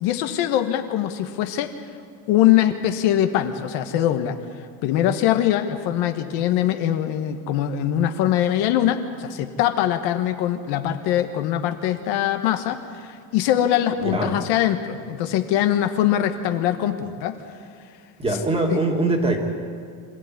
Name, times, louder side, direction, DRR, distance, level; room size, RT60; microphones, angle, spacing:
voice 1, 0.0-1.7 2.3-4.4 4.8-17.4 18.7-18.8, left 11 dB, 55° left, 7 dB, 1.3 m, -22 dB
voice 2, 14.0-14.4 18.2-19.4, right 2 dB, 10° right, 2 dB, 2.3 m, -22 dB
25.5 x 15.0 x 9.7 m, 2.2 s
cardioid pair, 175°, 46 cm